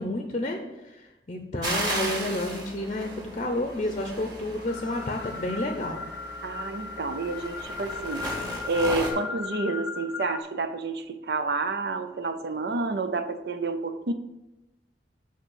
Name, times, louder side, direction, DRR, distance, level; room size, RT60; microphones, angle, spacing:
voice 1, 0.0-6.0, left 1 dB, 40° left, 4 dB, 0.7 m, -30 dB
sound 1, 1.6-9.1, right 1 dB, 25° right, 2.1 m, -36 dB
sound 2, 4.7-10.4, left 4 dB, 80° left, 0.7 m, -37 dB
voice 2, 6.4-8.3 8.7-14.1, right 3 dB, 65° right, 9 dB, 0.5 m, -29 dB
6.5 x 5.2 x 6.3 m, 1.0 s
head